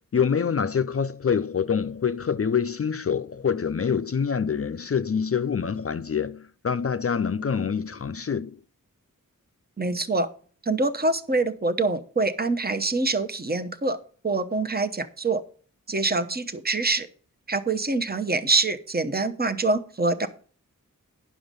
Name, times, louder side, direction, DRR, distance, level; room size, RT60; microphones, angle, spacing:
voice 1, 0.1-8.6, left 6 dB, 45° left, 0.4 m, -26 dB
voice 2, 9.8-10.3 10.6-14.0 14.2-15.4 15.9-17.1 17.5-20.3, right 3 dB, 30° right, 0.9 m, -25 dB
9.7 x 6.3 x 5.2 m
wide cardioid pair, 55°, 33 cm